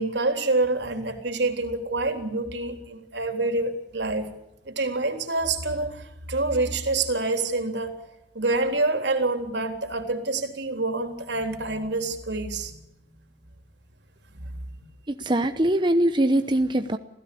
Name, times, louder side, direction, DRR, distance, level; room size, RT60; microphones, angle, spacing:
voice 1, 0.0-4.3 4.7-7.9 8.3-12.7 14.3-14.9, right 2 dB, 80° right, 7 dB, 3.6 m, -27 dB
voice 2, 15.1-17.0, right 1 dB, 25° right, 8 dB, 0.9 m, -22 dB
27.0 x 16.5 x 8.6 m, 0.89 s
head